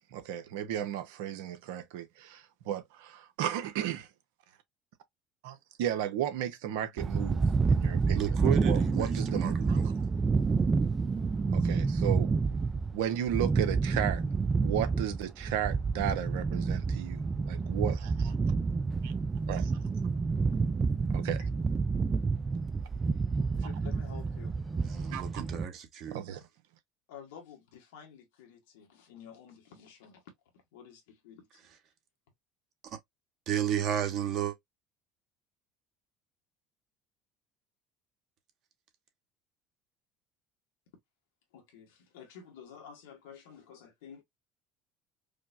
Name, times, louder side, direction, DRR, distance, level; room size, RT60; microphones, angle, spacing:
voice 1, 0.1-4.1 5.4-7.4 7.7-8.3 8.6-9.8 11.5-12.3 12.9-14.2 14.6-17.2 17.5-18.4 19.0-19.1 19.5-19.8 21.1-21.4 25.1-25.2 26.1-26.4, right 10 dB, 80° right, 0.7 m, -34 dB
sound 1, 7.0-25.7, right 4 dB, 25° right, 0.4 m, -29 dB
voice 2, 8.1-10.0 24.8-26.2 32.8-33.0 33.5-34.5, right 10 dB, 55° right, 1.3 m, -33 dB
voice 3, 23.6-24.5 27.1-30.2 30.7-31.5 41.5-44.2, left 7 dB, 80° left, 1.4 m, -51 dB
5.0 x 2.0 x 2.4 m
supercardioid pair, 85°, 0 cm